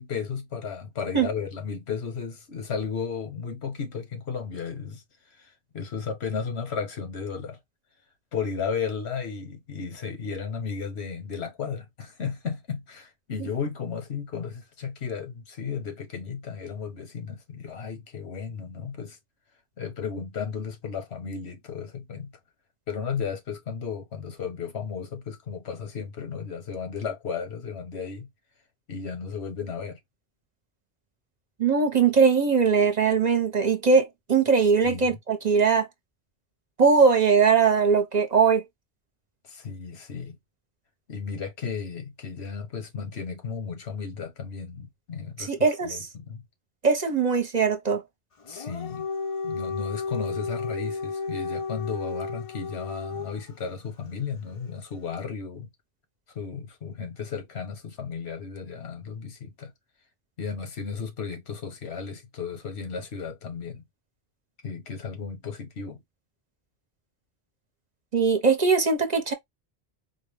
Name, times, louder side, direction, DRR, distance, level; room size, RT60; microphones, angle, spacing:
voice 1, 0.0-5.0 5.4-7.6 8.3-19.2 19.8-22.3 22.9-28.3 28.9-30.0 34.8-35.2 39.4-40.4 41.1-46.4 48.5-49.1 49.4-55.7 56.3-59.7 60.4-63.8 64.6-66.0, left 6 dB, 85° left, 1.3 m, -34 dB
voice 2, 31.6-35.9 36.8-38.6 45.5-46.0 46.8-48.0 68.1-69.3, right 5 dB, 45° right, 0.9 m, -21 dB
Dog, 48.4-53.6, left 4 dB, 40° left, 0.6 m, -33 dB
4.3 x 2.2 x 3.3 m
omnidirectional pair, 1.1 m